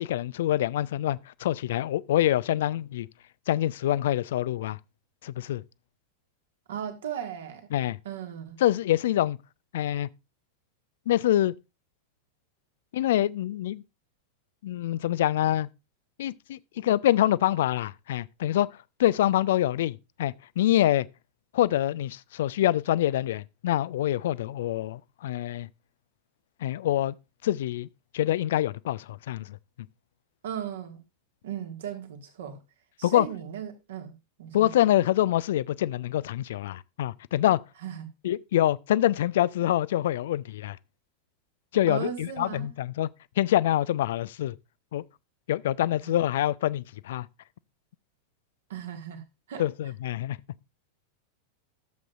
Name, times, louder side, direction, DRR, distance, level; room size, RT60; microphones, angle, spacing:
voice 1, 0.0-3.1 3.5-4.8 5.2-5.6 7.7-8.0 8.6-9.4 9.7-10.1 11.1-11.5 12.9-13.8 14.6-15.7 16.2-18.7 19.0-21.1 21.5-25.7 26.6-27.2 27.4-27.9 28.1-29.6 33.0-33.3 34.5-37.6 38.2-40.8 41.7-43.1 43.4-44.6 44.9-45.0 45.5-47.3 49.6-50.4, left 13 dB, 55° left, 0.4 m, -25 dB
voice 2, 6.7-7.7 8.0-8.6 30.4-31.0 31.4-32.6 33.0-34.1 34.4-34.7 37.8-38.1 41.9-42.7 46.0-46.3 48.7-49.2 49.5-49.7, right 9 dB, 60° right, 1.7 m, -36 dB
12.5 x 7.6 x 2.5 m
figure-of-eight pair, 90°, 0 cm